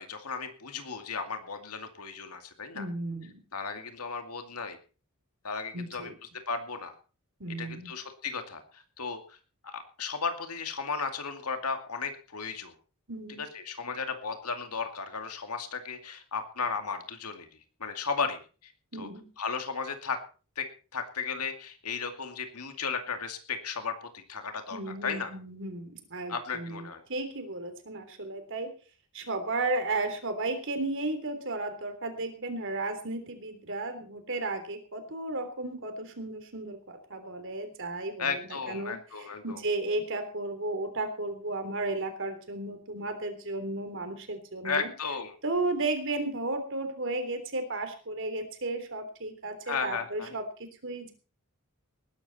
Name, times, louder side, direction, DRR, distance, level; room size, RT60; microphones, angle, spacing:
voice 1, 0.0-2.9 3.5-4.8 5.4-6.1 6.5-6.9 7.6-9.4 9.6-12.7 13.4-17.5 17.8-18.4 19.0-19.1 19.4-20.2 20.6-20.7 20.9-25.3 26.3-27.0 38.2-39.6 44.6-45.3 49.7-50.4, left 5 dB, 85° left, 6 dB, 2.3 m, -35 dB
voice 2, 2.7-3.4 5.7-6.1 7.4-7.9 13.1-13.4 18.9-19.3 24.7-28.7 29.1-44.9 45.4-51.1, right 2 dB, 60° right, 7 dB, 3.5 m, -34 dB
19.5 x 11.5 x 4.2 m, 0.37 s
head